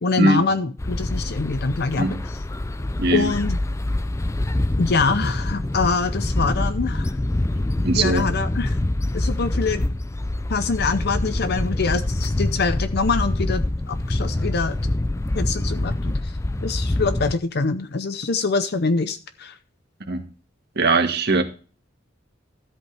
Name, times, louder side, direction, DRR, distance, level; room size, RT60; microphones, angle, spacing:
voice 1, 0.0-2.4 3.1-3.6 4.8-7.1 7.9-8.8 9.1-9.9 10.5-13.6 13.9-14.8 15.3-16.3 16.6-19.6, left 4 dB, 55° left, 0.7 m, -24 dB
sound 1, 0.8-17.3, left 1 dB, 15° left, 0.4 m, -25 dB
voice 2, 3.0-3.3 7.8-8.2 20.1-20.2 20.8-21.4, right 2 dB, 55° right, 1.9 m, -20 dB
13.0 x 8.3 x 3.4 m
head